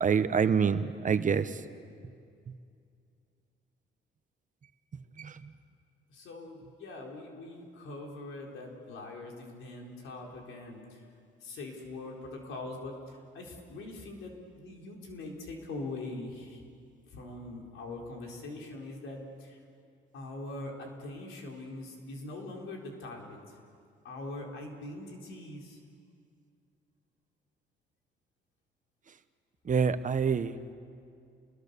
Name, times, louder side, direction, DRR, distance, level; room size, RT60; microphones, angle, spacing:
voice 1, 0.0-1.5 5.2-5.3 29.7-30.5, right 6 dB, 40° right, 11 dB, 1.1 m, -26 dB
voice 2, 6.1-11.0 11.4-16.6 17.1-19.6 20.1-23.4 24.0-25.8, left 2 dB, 85° left, 0 dB, 4.4 m, -42 dB
29.5 x 22.0 x 6.9 m, 2.4 s
cardioid pair, 90°, 20 cm